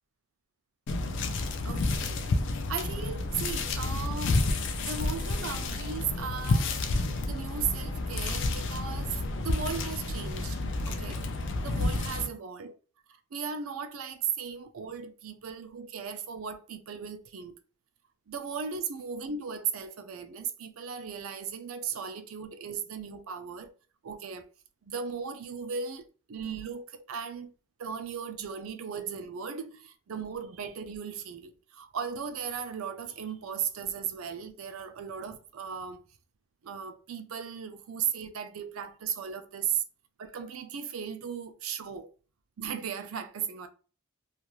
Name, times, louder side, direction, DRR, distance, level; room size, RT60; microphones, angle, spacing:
sound 1, 0.9-12.3, left 2 dB, 55° left, 0.4 m, -30 dB
voice 1, 1.6-2.3 2.7-4.4 4.8-6.8 7.3-9.1 9.4-10.6 10.9-11.2 11.6-12.7 13.1-17.5 18.3-23.7 24.0-24.5 24.8-27.5 27.8-36.0 36.6-39.8 40.2-42.1 42.6-43.7, right 7 dB, 75° right, 0.4 m, -36 dB
3.0 x 2.4 x 2.3 m
head